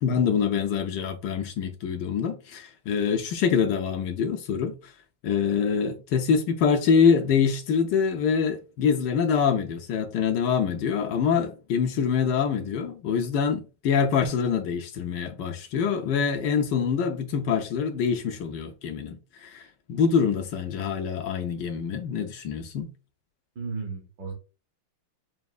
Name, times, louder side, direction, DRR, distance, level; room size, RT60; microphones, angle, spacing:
voice 1, 0.0-4.9 5.2-22.9, left 6 dB, 80° left, 1.0 m, -25 dB
voice 2, 23.5-24.3, right 4 dB, 60° right, 1.5 m, -35 dB
6.0 x 2.7 x 2.4 m
omnidirectional pair, 2.4 m